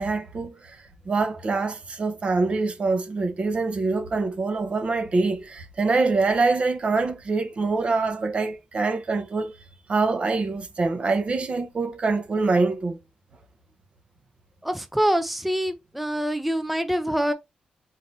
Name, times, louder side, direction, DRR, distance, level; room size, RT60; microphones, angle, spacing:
voice 1, 0.0-9.6 9.9-13.0, right 3 dB, 45° right, 0.8 m, -25 dB
voice 2, 14.6-17.3, equal, 5° right, 0.4 m, -25 dB
4.1 x 2.8 x 3.2 m
cardioid pair, 75°, 3 cm